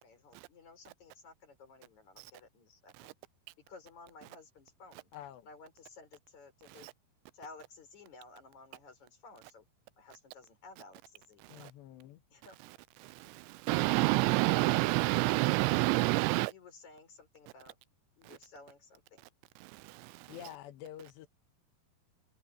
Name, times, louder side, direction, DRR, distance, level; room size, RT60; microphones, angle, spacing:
voice 1, 0.0-3.1 3.7-5.1 5.4-6.9 7.3-9.6 10.0-11.7 12.3-12.6 16.4-17.8 18.2-19.2, left 3 dB, 40° left, 6.0 m, -55 dB
voice 2, 5.1-5.5 11.5-12.2 20.3-21.3, left 11 dB, 80° left, 3.3 m, -48 dB
voice 3, 13.0-16.5 19.6-20.3, right 22 dB, 90° right, 2.8 m, -28 dB
omnidirectional pair, 5.0 m